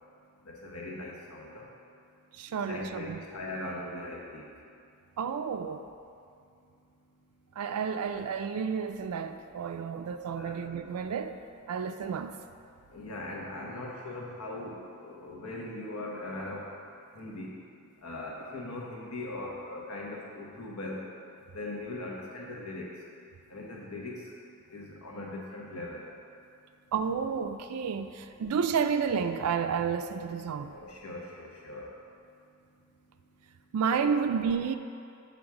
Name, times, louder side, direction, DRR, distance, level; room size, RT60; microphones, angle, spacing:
voice 1, 0.5-1.6 2.7-4.5 10.4-10.6 12.9-16.6 17.2-17.5 18.0-21.0 21.5-22.9 23.5-24.2 24.7-26.0 30.7-31.9 34.0-34.2, left 2 dB, 80° left, -2 dB, 1.1 m, -40 dB
voice 2, 2.4-3.2 5.2-5.9 7.6-11.4 11.7-12.3 26.9-30.7 33.7-34.8, right 6 dB, 85° right, 8 dB, 0.4 m, -31 dB
7.1 x 3.9 x 4.8 m, 2.4 s
head